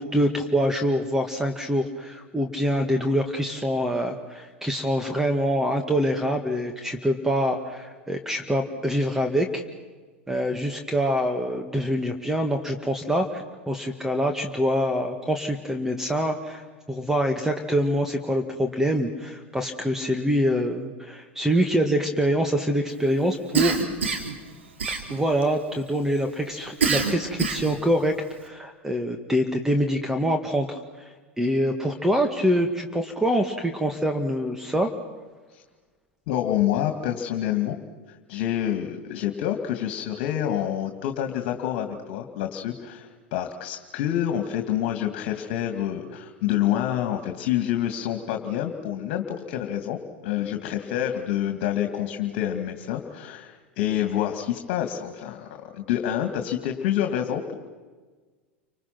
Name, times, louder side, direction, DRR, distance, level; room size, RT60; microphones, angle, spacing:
voice 1, 0.0-9.6 10.3-23.8 24.9-28.2 28.4-34.9, equal, 5° right, 4 dB, 2.0 m, -25 dB
Cough, 23.5-24.4 24.8-25.4 26.8-27.8, right 5 dB, 75° right, 3.5 m, -25 dB
voice 2, 36.3-37.8 38.3-57.5, left 11 dB, 55° left, 5 dB, 2.4 m, -27 dB
30.0 x 26.0 x 6.1 m, 1.4 s
figure-of-eight pair, 85°, 6 cm